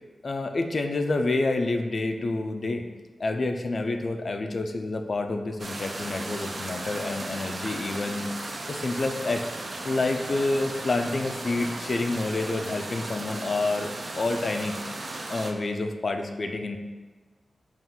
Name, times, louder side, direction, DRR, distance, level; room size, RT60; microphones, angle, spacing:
voice 1, 0.2-2.9 3.2-8.2 8.7-9.4 9.8-16.8, left 2 dB, 50° left, 5 dB, 0.3 m, -28 dB
sound 1, 5.6-15.5, right 2 dB, 45° right, 0.4 m, -36 dB
3.7 x 2.4 x 4.2 m, 1.3 s
wide cardioid pair, 125°, 0 cm